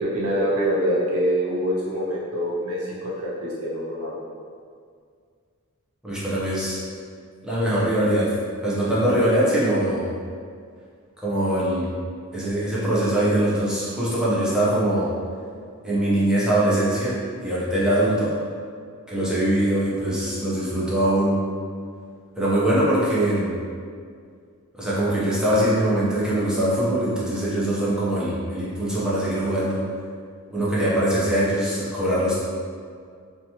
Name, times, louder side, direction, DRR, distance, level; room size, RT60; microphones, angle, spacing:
voice 1, 0.0-4.2, equal, 85° right, -6 dB, 0.6 m, -25 dB
voice 2, 6.0-6.8 7.4-8.3 8.6-10.1 11.2-11.9 12.3-15.1 15.8-18.3 19.1-21.4 22.4-23.5 24.7-29.8 30.5-32.3, right 1 dB, 5° right, -9 dB, 0.6 m, -22 dB
2.8 x 2.3 x 2.8 m, 2.1 s
head